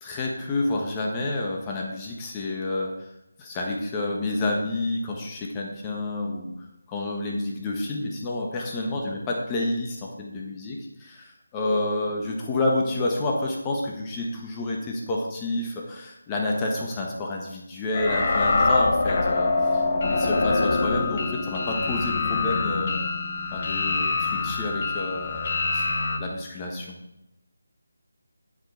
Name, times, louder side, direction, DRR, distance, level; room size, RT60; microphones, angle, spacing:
voice 1, 0.0-3.1 3.4-6.5 6.9-10.7 11.5-23.0 23.5-25.9 26.2-26.9, left 2 dB, 15° left, -1 dB, 1.3 m, -29 dB
sound 1, 17.9-26.2, left 3 dB, 45° left, 1.2 m, -25 dB
8.9 x 8.1 x 4.4 m, 0.87 s
figure-of-eight pair, 165°, 0 cm